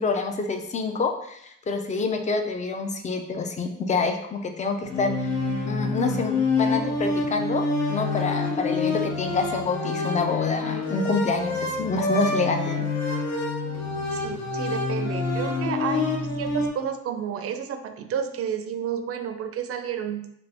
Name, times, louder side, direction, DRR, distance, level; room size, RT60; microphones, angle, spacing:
voice 1, 0.0-5.4 5.7-7.6 7.9-12.9, left 4 dB, 25° left, 5 dB, 0.4 m, -27 dB
sound 1, 4.8-16.7, left 3 dB, 60° left, 0.7 m, -27 dB
voice 2, 14.1-20.2, right 7 dB, 50° right, 8 dB, 0.4 m, -31 dB
2.9 x 2.6 x 3.4 m, 0.75 s
cardioid pair, 90°, 30 cm